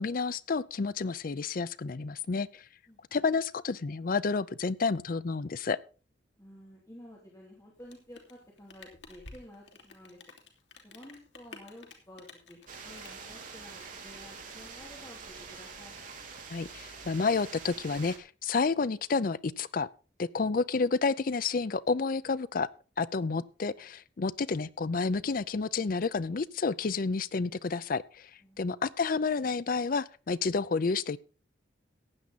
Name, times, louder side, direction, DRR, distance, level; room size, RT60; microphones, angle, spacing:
voice 1, 0.0-2.7 3.1-5.8 16.5-19.9 20.2-22.7 23.0-28.3 28.6-31.2, left 4 dB, 50° left, 18 dB, 0.5 m, -30 dB
voice 2, 6.4-10.2 10.8-12.6 12.8-16.0 28.4-28.8, left 1 dB, 20° left, -3 dB, 2.9 m, -51 dB
Rain, 7.7-14.6, left 3 dB, 80° left, 2.9 m, -53 dB
sound 1, 12.7-18.2, right 5 dB, 45° right, 2.9 m, -45 dB
15.5 x 9.8 x 4.1 m, 0.35 s
head